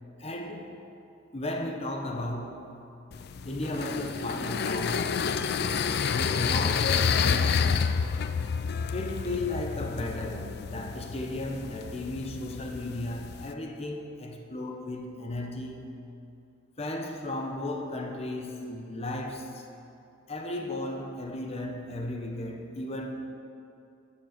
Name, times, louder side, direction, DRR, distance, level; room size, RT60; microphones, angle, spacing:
voice 1, 0.2-0.8 1.3-2.8 3.4-7.8 8.9-15.8 16.8-19.7 20.3-23.2, left 1 dB, 30° left, 3 dB, 0.8 m, -35 dB
sound 1, 3.1-13.5, left 6 dB, 50° left, 0.3 m, -29 dB
12.5 x 7.3 x 5.0 m, 2.7 s
head